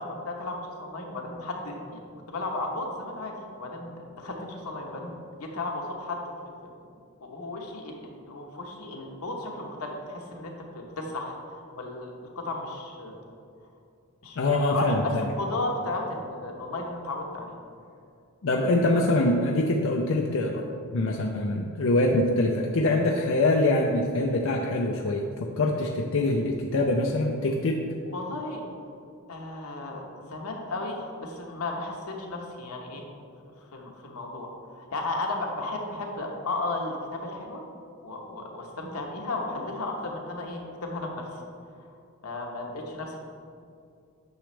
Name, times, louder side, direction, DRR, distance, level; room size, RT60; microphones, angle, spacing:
voice 1, 0.0-2.0 2.3-6.2 6.6-6.7 7.2-13.2 14.2-14.4 14.7-17.5 28.1-28.6 29.3-33.1 33.7-37.6 38.0-41.3 42.2-43.2, left 2 dB, 90° left, 1 dB, 1.1 m, -34 dB
voice 2, 14.4-15.3 18.4-20.6 20.9-27.8, left 2 dB, 65° left, 0 dB, 0.5 m, -24 dB
9.3 x 6.0 x 3.3 m, 2.4 s
head